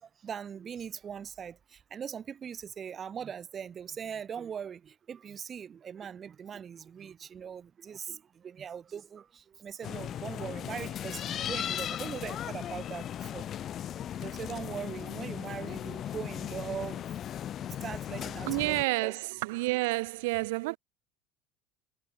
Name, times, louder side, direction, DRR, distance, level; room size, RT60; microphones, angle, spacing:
voice 1, 0.0-13.5 14.2-17.0 17.6-19.2, right 7 dB, 35° right, 1.1 m, -41 dB
sound 1, 9.8-18.8, left 10 dB, 45° left, 0.5 m, -37 dB
voice 2, 18.5-20.8, right 23 dB, 70° right, 0.8 m, -29 dB
hypercardioid pair, 75°, 0 cm